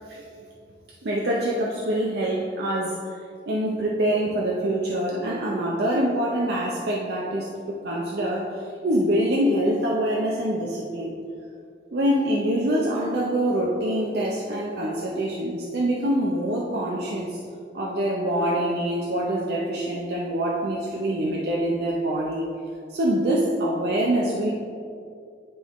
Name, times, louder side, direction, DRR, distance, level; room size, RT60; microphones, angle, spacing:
voice 1, 1.0-3.0 3.5-8.5 8.8-11.1 11.9-17.4 17.7-22.4 22.9-24.5, right 1 dB, 65° right, -3 dB, 0.6 m, -25 dB
10.5 x 3.5 x 3.0 m, 2.4 s
head